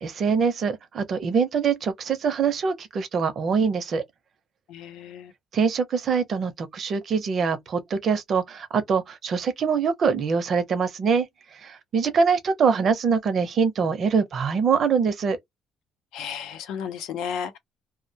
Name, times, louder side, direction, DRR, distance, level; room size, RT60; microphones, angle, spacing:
voice 1, 0.0-4.0 5.5-11.3 11.6-15.4, right 5 dB, 40° right, 0.5 m, -24 dB
voice 2, 4.7-5.3 16.1-17.6, left 7 dB, 90° left, 0.6 m, -33 dB
2.2 x 2.1 x 2.7 m
cardioid pair, 155°, 0 cm